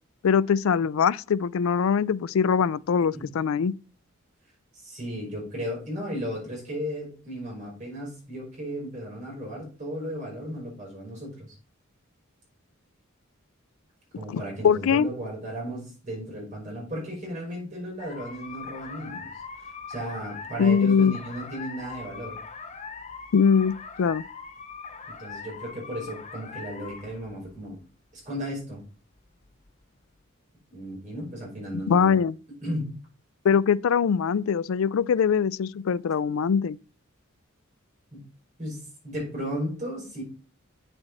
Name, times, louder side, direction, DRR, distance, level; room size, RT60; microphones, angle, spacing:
voice 1, 0.2-3.7 14.3-15.1 20.6-21.2 23.3-24.2 31.9-32.4 33.4-36.8, left 6 dB, 75° left, 0.4 m, -22 dB
voice 2, 4.7-11.5 14.2-19.3 19.9-22.4 25.2-27.8 28.1-28.8 30.7-32.2 32.6-32.9 38.1-38.2 38.6-40.2, equal, 35° right, 5.6 m, -35 dB
sound 1, 18.0-30.2, left 5 dB, 30° left, 0.8 m, -41 dB
8.2 x 6.7 x 4.1 m
head